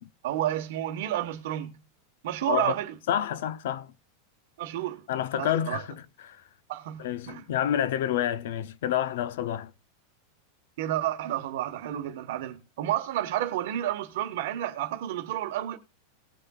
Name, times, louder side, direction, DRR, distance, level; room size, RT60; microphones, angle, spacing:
voice 1, 0.2-1.7 2.2-2.9 4.6-5.0 5.4-5.8 6.7-7.4 10.8-15.8, right 12 dB, 55° right, 1.2 m, -30 dB
voice 2, 3.1-3.9 5.1-6.4 7.0-9.7, left 10 dB, 65° left, 0.6 m, -29 dB
19.0 x 6.6 x 2.4 m
supercardioid pair, 175°, 0 cm